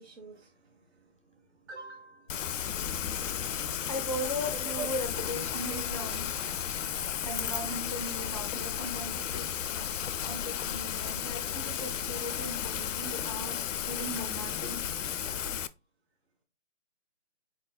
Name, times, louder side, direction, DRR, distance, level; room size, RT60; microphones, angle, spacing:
voice 1, 0.0-2.6 4.5-4.9 5.7-6.1 7.8-8.0, right 5 dB, 70° right, 1.5 m, -46 dB
Rain, 2.3-15.7, left 9 dB, 85° left, 0.5 m, -34 dB
voice 2, 3.9-6.3 7.2-9.8 10.2-13.6 13.9-14.8, left 1 dB, 30° left, 0.4 m, -38 dB
sound 1, 5.7-12.4, right 3 dB, 45° right, 1.2 m, -53 dB
4.7 x 4.1 x 2.3 m
hypercardioid pair, 155°, 37 cm